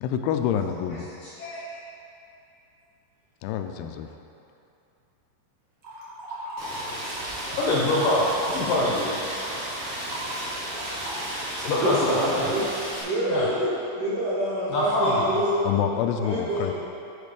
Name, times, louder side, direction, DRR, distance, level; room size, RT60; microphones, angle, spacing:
voice 1, 0.0-1.1 3.4-4.1 15.6-16.8, left 9 dB, 90° left, 6 dB, 3.0 m, -27 dB
voice 2, 1.2-1.6 7.5-9.1 11.6-12.5 13.2-13.5 14.7-15.3, left 1 dB, 75° left, -6 dB, 2.1 m, -24 dB
sound 1, 5.8-7.3 7.6-12.0, right 1 dB, 90° right, 1.1 m, -38 dB
Rain, 6.6-13.0, right 1 dB, 50° right, 2.8 m, -34 dB
voice 3, 10.7-11.4 11.8-12.6 13.0-13.7 14.0-15.7 16.2-16.8, right 1 dB, 75° right, -8 dB, 1.9 m, -27 dB
11.0 x 5.2 x 5.0 m, 2.7 s
omnidirectional pair, 5.3 m